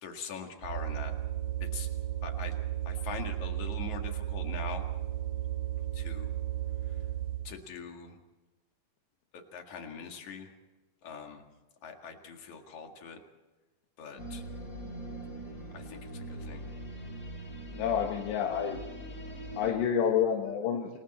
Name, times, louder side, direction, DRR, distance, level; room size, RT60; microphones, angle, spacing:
voice 1, 0.0-1.1 1.6-1.9 2.2-2.6 2.9-4.8 5.9-6.3 6.9-7.0 7.4-8.2 9.3-10.5 11.0-11.4 11.8-13.2 14.0-14.4 15.7-16.7, left 6 dB, 50° left, 4 dB, 2.9 m, -43 dB
sound 1, 0.6-7.5, right 13 dB, 65° right, 3.0 m, -34 dB
sound 2, 14.2-19.7, right 1 dB, 20° left, 3.4 m, -42 dB
voice 2, 17.7-18.8 19.6-21.0, left 8 dB, 80° left, 1 dB, 3.6 m, -29 dB
28.5 x 21.0 x 4.3 m, 1.2 s
omnidirectional pair, 4.9 m